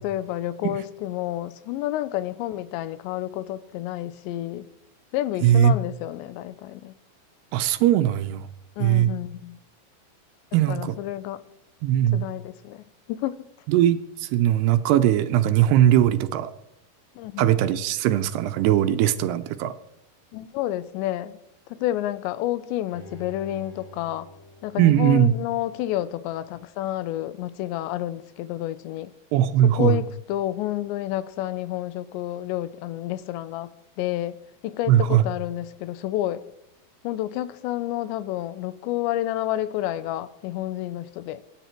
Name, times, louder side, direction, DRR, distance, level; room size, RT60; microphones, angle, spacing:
voice 1, 0.0-4.7 5.1-6.9 8.8-9.6 10.7-11.4 12.1-13.4 17.2-17.5 20.3-21.4 21.7-24.3 24.6-29.1 29.6-33.7 34.0-34.4 34.6-36.4 37.0-41.4, left 14 dB, 90° left, 3.0 m, -29 dB
voice 2, 5.4-5.8 7.5-8.5 8.8-9.1 10.5-10.9 11.8-12.2 13.7-16.5 17.4-19.7 24.8-25.3 29.3-30.0 34.9-35.2, right 11 dB, 80° right, 2.7 m, -20 dB
Bowed string instrument, 22.9-26.0 26.4-26.5, right 1 dB, 5° left, 2.5 m, -47 dB
24.0 x 10.0 x 4.5 m
omnidirectional pair, 5.0 m